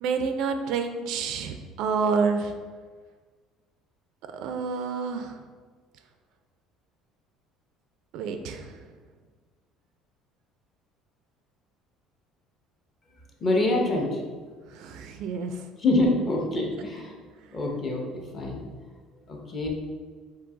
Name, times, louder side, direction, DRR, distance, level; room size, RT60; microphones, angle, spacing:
voice 1, 0.0-2.5 4.3-5.4 8.1-8.8 14.7-15.6, right 5 dB, 55° right, 7 dB, 0.3 m, -28 dB
voice 2, 13.4-14.1 15.8-17.1 17.5-18.0 18.3-18.6 19.3-19.7, left 2 dB, 20° left, 0 dB, 0.6 m, -25 dB
3.8 x 2.7 x 4.7 m, 1.5 s
cardioid pair, 175°, 0 cm